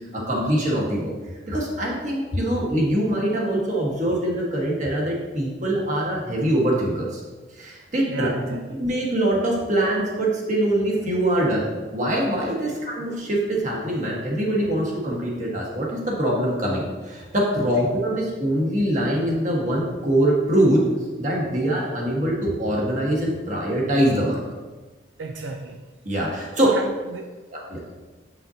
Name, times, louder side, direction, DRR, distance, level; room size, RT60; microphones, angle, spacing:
voice 1, 0.1-1.1 1.5-7.2 7.6-8.3 8.7-20.8 21.2-24.4 26.0-26.7 27.5-27.9, right 1 dB, 40° right, -3 dB, 1.4 m, -23 dB
voice 2, 8.1-8.6 12.7-12.8 25.2-25.8 26.6-27.4, right 3 dB, 80° right, 4 dB, 0.4 m, -32 dB
7.5 x 5.6 x 2.7 m, 1.3 s
head